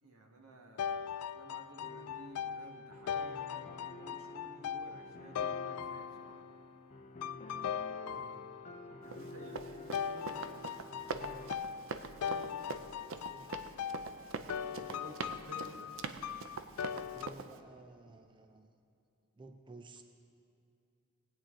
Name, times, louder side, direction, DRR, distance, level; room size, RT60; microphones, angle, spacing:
voice 1, 0.0-6.4 9.0-11.0 14.5-16.0, right 1 dB, 85° right, 2 dB, 1.6 m, -55 dB
sound 1, 0.8-6.6 7.2-8.9 9.9-17.3, left 8 dB, 85° left, 0.3 m, -40 dB
sound 2, 1.8-11.5, left 3 dB, 35° left, 0.9 m, -50 dB
voice 2, 8.0-8.5 12.2-13.7 15.0-15.8 16.9-18.7 19.4-20.0, right 2 dB, 20° right, 6 dB, 0.5 m, -55 dB
Run, 9.1-17.6, right 4 dB, 65° right, 0.6 m, -43 dB
19.0 x 8.7 x 3.8 m, 2.6 s
head